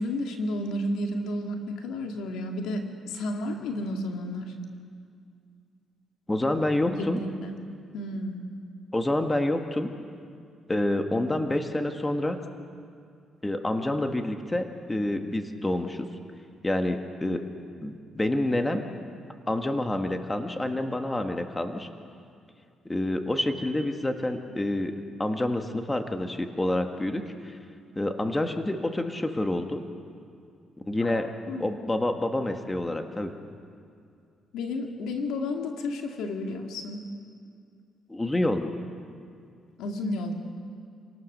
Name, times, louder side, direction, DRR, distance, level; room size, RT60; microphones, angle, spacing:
voice 1, 0.0-4.5 6.9-7.5 7.9-8.4 31.1-31.7 34.5-37.0 39.8-40.3, left 1 dB, 90° left, 3 dB, 2.3 m, -32 dB
voice 2, 6.3-7.2 8.9-9.9 10.7-12.4 13.4-16.1 16.6-17.4 17.8-18.9 19.5-21.9 22.9-24.9 25.2-27.6 27.9-29.8 30.8-31.3 31.6-33.3 38.1-38.7, left 1 dB, 15° left, 5 dB, 1.7 m, -28 dB
28.0 x 18.0 x 6.8 m, 2.3 s
cardioid pair, 90°, 0 cm